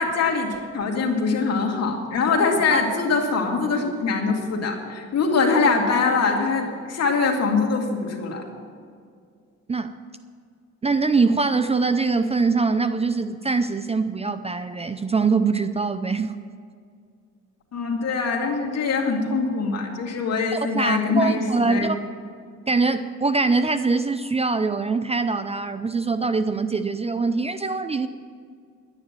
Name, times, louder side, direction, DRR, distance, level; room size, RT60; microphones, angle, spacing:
voice 1, 0.0-8.4 17.7-21.9, left 4 dB, 55° left, 1 dB, 2.5 m, -23 dB
voice 2, 10.8-16.4 20.5-22.0 22.7-28.1, right 4 dB, 20° right, 11 dB, 0.5 m, -23 dB
11.0 x 9.8 x 7.5 m, 2.2 s
cardioid pair, 90°, 30 cm